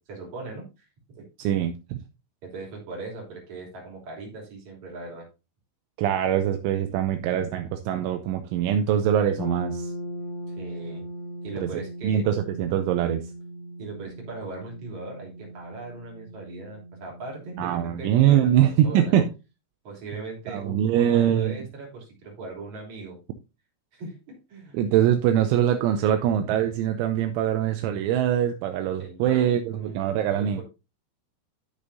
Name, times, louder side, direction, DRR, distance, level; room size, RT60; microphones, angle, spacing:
voice 1, 0.1-1.3 2.4-5.3 10.5-11.1 11.4-12.2 13.8-19.1 19.8-23.2 23.9-24.8 29.0-29.9 30.3-30.6, right 3 dB, 40° right, 4.1 m, -39 dB
voice 2, 1.4-2.0 6.0-9.9 12.0-13.2 17.6-19.3 20.5-21.6 24.7-30.6, right 10 dB, 80° right, 3.0 m, -23 dB
sound 1, 9.4-19.2, equal, 60° left, 2.0 m, -39 dB
12.0 x 6.6 x 2.7 m
omnidirectional pair, 5.6 m